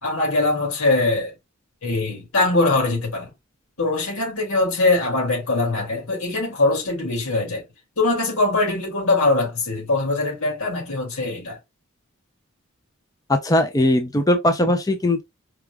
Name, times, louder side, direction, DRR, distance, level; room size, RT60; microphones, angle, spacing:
voice 1, 0.0-1.3 1.8-3.3 3.8-7.6 8.0-11.6, left 2 dB, 85° left, 2.6 m, -22 dB
voice 2, 13.3-15.2, left 1 dB, 15° left, 0.5 m, -19 dB
4.7 x 2.4 x 3.4 m
head